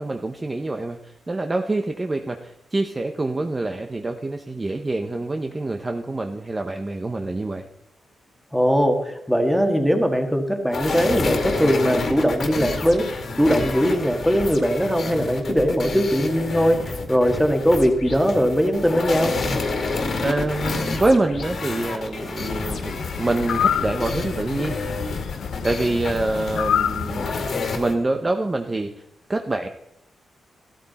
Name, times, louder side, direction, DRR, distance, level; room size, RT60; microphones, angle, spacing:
voice 1, 0.0-7.7 20.2-24.8 25.6-27.5 27.7-29.0 29.3-29.7, right 2 dB, 20° right, 5 dB, 0.8 m, -26 dB
voice 2, 8.5-19.3, equal, ahead, 5 dB, 1.7 m, -20 dB
sound 1, 10.7-27.9, left 3 dB, 50° left, 2.2 m, -29 dB
sound 2, 22.4-27.5, left 8 dB, 80° left, 0.6 m, -28 dB
15.0 x 13.0 x 4.2 m, 0.80 s
wide cardioid pair, 155°, 0 cm